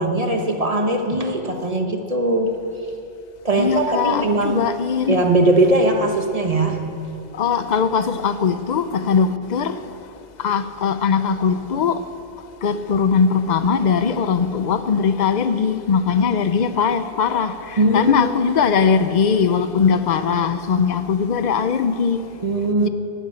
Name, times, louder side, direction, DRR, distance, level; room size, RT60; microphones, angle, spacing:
voice 1, 0.0-2.5 3.4-4.7 5.1-7.0 17.8-18.3 22.4-22.9, right 2 dB, 35° right, 1.2 m, -20 dB
voice 2, 3.6-5.2 7.3-9.8 10.4-12.0 12.6-22.2 22.8-22.9, left 6 dB, 50° left, 0.6 m, -20 dB
12.0 x 9.5 x 8.7 m
omnidirectional pair, 1.1 m